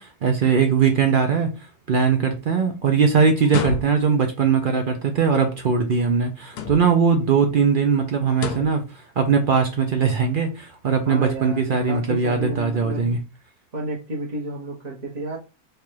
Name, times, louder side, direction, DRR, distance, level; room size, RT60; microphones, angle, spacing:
voice 1, 0.0-1.5 1.9-13.2, right 6 dB, 85° right, 0.4 m, -20 dB
sound 1, 3.4-4.3 6.5-7.1 8.3-8.9, left 5 dB, 85° left, 1.2 m, -29 dB
voice 2, 11.0-13.1 13.7-15.4, right 1 dB, 35° right, 1.0 m, -31 dB
3.3 x 2.5 x 4.4 m
omnidirectional pair, 1.6 m